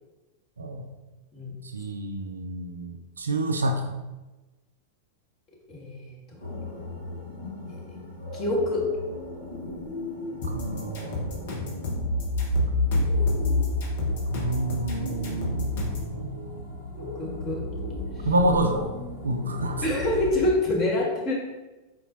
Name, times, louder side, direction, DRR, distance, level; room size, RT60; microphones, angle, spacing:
voice 1, 1.6-3.9 10.4-12.1 14.3-16.8 18.3-18.9 19.2-19.9, right 2 dB, 75° right, 5 dB, 0.4 m, -29 dB
voice 2, 5.7-6.4 8.3-8.8 17.2-17.6 19.8-21.3, left 1 dB, 30° left, -3 dB, 1.3 m, -26 dB
sound 1, 6.4-20.5, left 2 dB, 80° left, 1.1 m, -31 dB
sound 2, 10.4-16.1, left 2 dB, 55° left, 1.1 m, -33 dB
4.4 x 4.0 x 2.6 m, 1.1 s
figure-of-eight pair, 90°, 0 cm